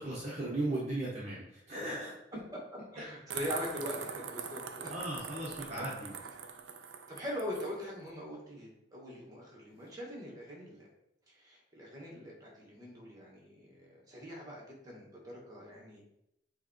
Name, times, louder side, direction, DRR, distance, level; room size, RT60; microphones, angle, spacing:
voice 1, 0.0-2.1 3.0-3.1 4.9-6.1, right 1 dB, 40° right, -7 dB, 1.5 m, -37 dB
voice 2, 2.9-4.9 7.1-10.9 11.3-16.0, equal, 20° right, -3 dB, 2.1 m, -42 dB
sound 1, 3.3-7.7, right 6 dB, 90° right, 0.7 m, -43 dB
8.2 x 3.4 x 4.6 m, 0.82 s
head